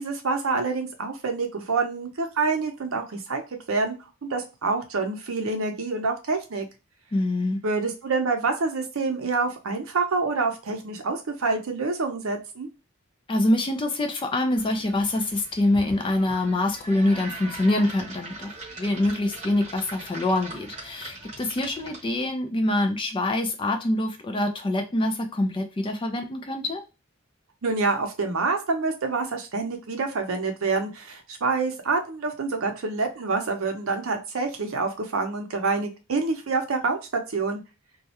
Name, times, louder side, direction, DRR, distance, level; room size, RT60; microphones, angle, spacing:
voice 1, 0.0-3.4 3.7-3.9 4.2-6.6 7.6-12.7 27.6-37.6, right 3 dB, 80° right, 5 dB, 0.6 m, -27 dB
voice 2, 7.1-7.6 13.3-18.5 18.8-26.8, left 1 dB, 25° left, 5 dB, 0.4 m, -25 dB
sound 1, 14.6-22.3, right 2 dB, 35° right, 0.8 m, -41 dB
2.3 x 2.1 x 2.8 m, 0.28 s
head